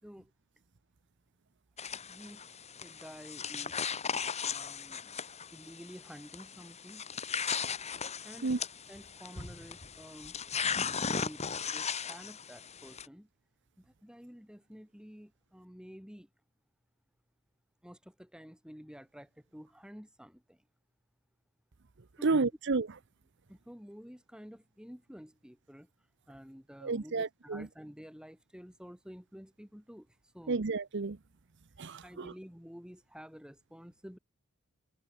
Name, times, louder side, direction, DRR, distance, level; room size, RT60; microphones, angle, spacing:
sound 1, 1.8-13.1, left 6 dB, 30° left, 2.0 m, -37 dB
voice 1, 2.1-2.5 2.8-3.8 4.4-5.2 5.5-7.1 8.2-8.5 8.9-10.4 11.0-13.3 13.8-16.3 17.8-20.6 22.2-22.4 23.5-25.9 26.3-30.1 30.3-30.6 32.0-34.2, equal, 5° right, 4.0 m, -50 dB
voice 2, 22.2-22.9 26.8-27.7 30.5-31.2 31.8-32.3, right 3 dB, 60° right, 0.8 m, -31 dB
head